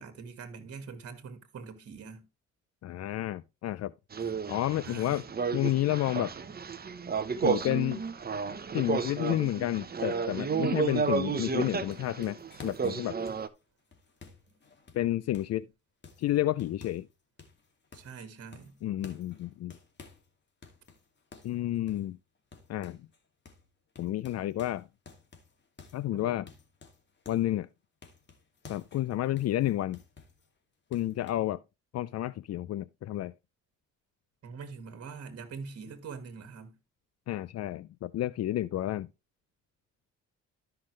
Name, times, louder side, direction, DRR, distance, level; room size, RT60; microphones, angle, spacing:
voice 1, 0.0-2.2 4.2-4.3 4.8-5.2 17.9-18.7 26.1-26.5 34.4-36.7, right 5 dB, 55° right, 1.9 m, -44 dB
voice 2, 2.8-3.9 4.5-5.2 5.5-6.3 7.4-8.0 8.7-13.2 14.9-15.7 16.2-17.1 18.8-19.7 21.4-22.2 22.7-23.0 24.0-24.9 25.9-26.5 27.3-27.7 28.7-30.0 30.9-31.6 31.9-33.3 37.3-39.1, left 14 dB, 55° left, 0.4 m, -30 dB
sound 1, 4.1-13.5, right 5 dB, 30° right, 0.9 m, -32 dB
sound 2, 11.4-15.6 16.0-17.1 17.4-18.2 18.5-20.3 20.6-23.2 23.4-23.7 24.0-27.5 28.0-30.5 30.9-31.3, left 4 dB, 35° left, 2.4 m, -53 dB
13.0 x 5.8 x 3.2 m
cardioid pair, 90°, 30 cm